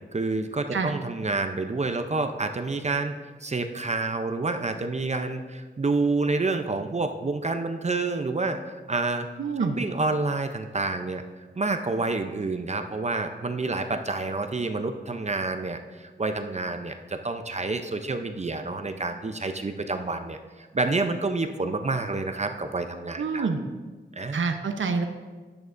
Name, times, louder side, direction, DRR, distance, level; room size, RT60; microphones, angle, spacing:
voice 1, 0.1-3.2 3.4-8.6 8.9-9.3 9.6-11.2 11.6-23.5 24.2-24.4, right 3 dB, 35° right, 7 dB, 0.6 m, -28 dB
voice 2, 9.4-9.8 23.2-23.6 24.3-25.1, right 4 dB, 85° right, 7 dB, 0.8 m, -26 dB
10.5 x 9.5 x 2.5 m, 1.4 s
wide cardioid pair, 70°, 19 cm